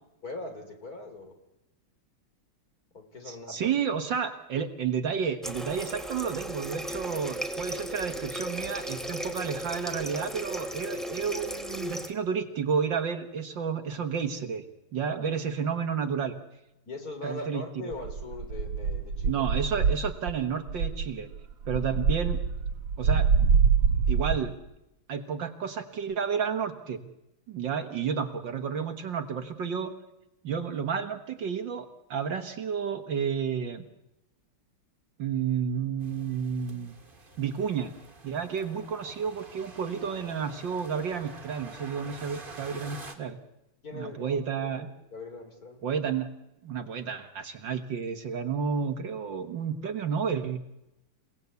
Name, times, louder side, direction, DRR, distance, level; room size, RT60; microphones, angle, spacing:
voice 1, 0.2-1.3 2.9-3.7 15.0-15.2 16.9-19.5 43.8-45.8, left 2 dB, 40° left, 6 dB, 4.0 m, -41 dB
voice 2, 3.2-14.6 14.9-16.3 17.2-17.9 19.2-21.3 21.7-22.4 23.0-23.3 24.1-24.5 25.1-27.1 27.5-29.9 30.4-33.8 35.2-36.9 37.4-37.9 38.2-43.4 43.9-44.9 45.8-46.3 46.6-50.6, right 6 dB, 60° right, 8 dB, 2.0 m, -31 dB
Water tap faucet, 5.4-12.1, equal, ahead, 1.9 m, -36 dB
sound 1, 17.9-20.4 20.7-24.5, right 6 dB, 85° right, 2.9 m, -25 dB
sound 2, 36.0-43.1, right 3 dB, 25° right, 2.1 m, -47 dB
28.5 x 18.0 x 8.3 m, 0.90 s
omnidirectional pair, 2.4 m